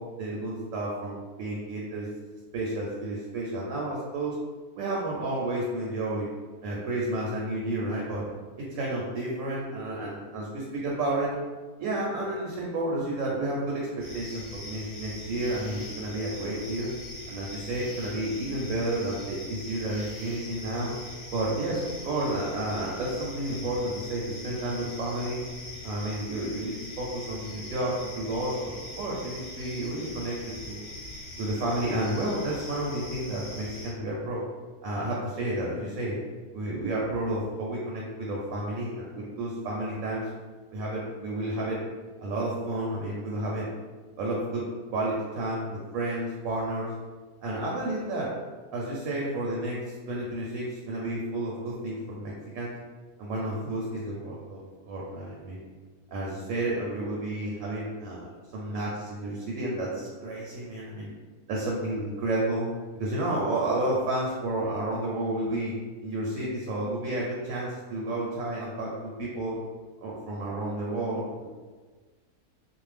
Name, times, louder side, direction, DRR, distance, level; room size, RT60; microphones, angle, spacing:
voice 1, 0.0-2.1 2.5-4.3 4.8-6.3 6.6-8.3 8.6-11.4 11.8-16.9 17.3-20.9 21.3-25.4 25.8-30.3 30.6-30.9 31.4-34.4 34.8-36.2 36.5-40.3 40.7-41.8 42.2-43.7 44.2-44.6 44.9-46.9 47.4-48.3 48.7-52.7 53.2-54.6 54.9-55.6 56.1-61.1 61.5-62.7 62.9-65.7 66.0-69.6 70.0-71.5, right 1 dB, 70° right, -4 dB, 0.9 m, -31 dB
sound 1, 14.0-33.9, left 1 dB, 25° left, 0.6 m, -42 dB
2.5 x 2.0 x 3.2 m, 1.4 s
omnidirectional pair, 1.6 m